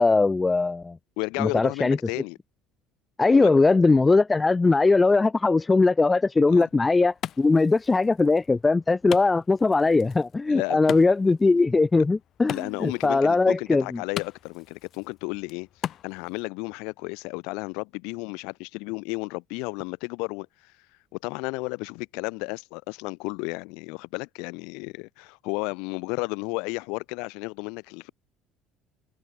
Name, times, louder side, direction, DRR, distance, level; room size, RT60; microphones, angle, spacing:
voice 1, 0.0-1.0 1.4-2.0 3.2-14.0, left 3 dB, 20° left, 1.0 m, -20 dB
voice 2, 1.2-2.4 3.3-3.5 6.5-6.7 10.5-10.8 12.5-15.7 16.0-20.7 21.2-28.1, left 30 dB, 80° left, 5.9 m, -33 dB
Wood, 6.4-16.4, left 11 dB, 50° left, 1.5 m, -40 dB
supercardioid pair, 95°, 0 cm